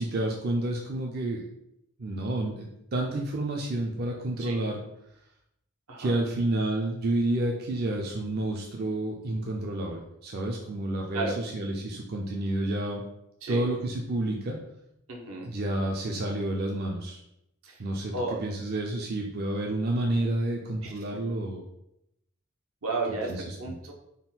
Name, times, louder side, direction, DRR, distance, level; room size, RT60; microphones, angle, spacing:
voice 1, 0.0-1.4 2.0-4.8 6.0-13.0 13.5-14.6 15.4-17.2 17.8-18.1 18.4-21.6 23.3-23.6, right 1 dB, 45° right, 0 dB, 0.4 m, -30 dB
voice 2, 15.1-15.5 17.6-17.8 18.1-18.4 20.8-20.9 22.8-23.9, right 3 dB, 80° right, 0 dB, 0.8 m, -33 dB
3.7 x 2.2 x 4.0 m, 0.82 s
head